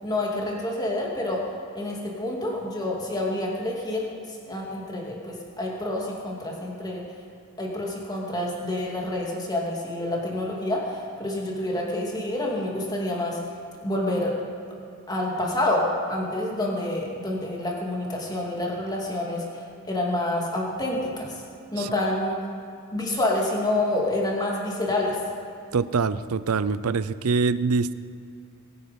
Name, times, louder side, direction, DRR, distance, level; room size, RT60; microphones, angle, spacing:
voice 1, 0.0-1.4 1.7-4.1 4.5-7.0 7.6-13.4 13.8-14.3 15.1-19.4 19.8-21.3 21.7-22.4 22.9-25.2, left 1 dB, 20° left, -2 dB, 2.6 m, -28 dB
voice 2, 25.7-27.9, right 4 dB, 75° right, 15 dB, 0.5 m, -24 dB
23.0 x 9.5 x 5.4 m, 2.4 s
head